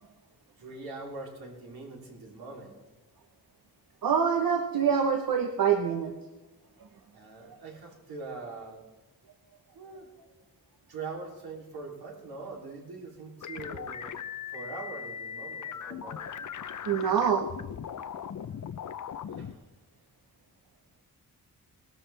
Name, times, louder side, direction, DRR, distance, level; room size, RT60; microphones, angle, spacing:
voice 1, 0.6-2.8 7.1-8.8 9.7-10.1 10.9-14.2 14.5-16.3 19.3-19.7, right 3 dB, 85° right, -2 dB, 3.3 m, -42 dB
voice 2, 4.0-6.1 7.4-7.6 16.8-17.5, right 7 dB, 70° right, 3 dB, 1.1 m, -25 dB
sound 1, 13.4-19.5, left 8 dB, 55° left, 0.7 m, -39 dB
18.5 x 13.0 x 3.4 m, 1.2 s
wide cardioid pair, 110°, 37 cm